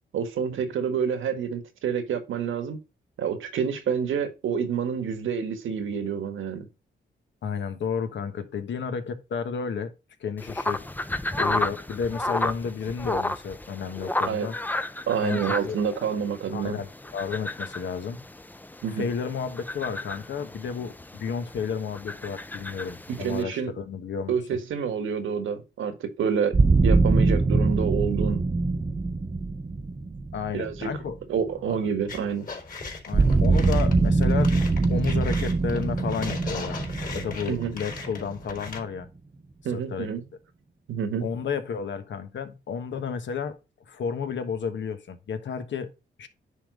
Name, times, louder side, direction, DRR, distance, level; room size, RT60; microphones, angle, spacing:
voice 1, 0.1-2.8 3.2-6.7 14.3-14.5 15.1-16.8 18.8-19.1 23.1-23.8 24.3-26.6 26.8-28.4 30.5-30.9 31.3-32.5 37.5-37.7 39.6-40.3 40.9-41.3, right 7 dB, 90° right, 1.6 m, -28 dB
voice 2, 7.4-9.9 10.2-10.8 11.4-14.5 15.2-15.8 16.5-18.3 18.9-24.3 30.3-31.2 31.7-31.8 33.1-34.5 34.9-36.8 37.1-39.1 39.9-40.1 41.2-43.6 43.8-45.9 46.2-46.3, left 6 dB, 70° left, 1.3 m, -32 dB
sound 1, 10.4-23.4, left 1 dB, 10° left, 0.6 m, -33 dB
sound 2, 26.5-31.5 33.1-38.8, right 3 dB, 25° right, 0.9 m, -23 dB
sound 3, 32.1-38.8, left 4 dB, 45° left, 3.9 m, -38 dB
10.0 x 3.8 x 5.0 m
cardioid pair, 90°, 20 cm